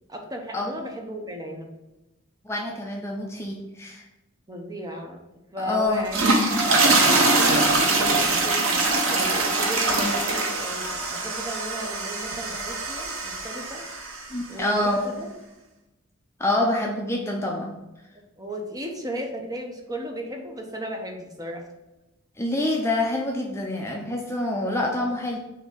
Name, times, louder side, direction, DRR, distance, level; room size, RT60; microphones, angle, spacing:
voice 1, 0.1-1.7 4.5-5.2 5.5-8.7 9.1-13.9 14.5-15.3 18.4-21.7, right 1 dB, 20° right, 2 dB, 0.8 m, -35 dB
voice 2, 2.4-4.1 5.6-6.1 14.3-15.1 16.4-17.7 22.4-25.4, left 1 dB, 15° left, 0 dB, 0.6 m, -26 dB
sound 1, 5.9-14.3, right 2 dB, 70° right, 1.0 m, -23 dB
6.4 x 3.0 x 5.2 m, 1.0 s
head